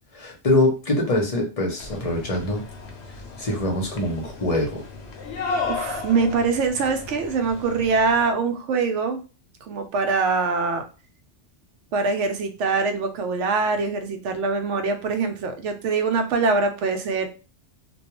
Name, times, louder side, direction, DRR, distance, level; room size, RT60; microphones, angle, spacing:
voice 1, 0.1-2.6 3.4-4.8, left 1 dB, 40° left, 1 dB, 0.6 m, -23 dB
sound 1, 1.8-8.3, left 4 dB, 70° left, 0.8 m, -34 dB
voice 2, 5.6-9.2 9.7-10.8 11.9-17.3, right 4 dB, 80° right, 6 dB, 0.9 m, -23 dB
2.2 x 2.2 x 2.9 m, 0.33 s
omnidirectional pair, 1.2 m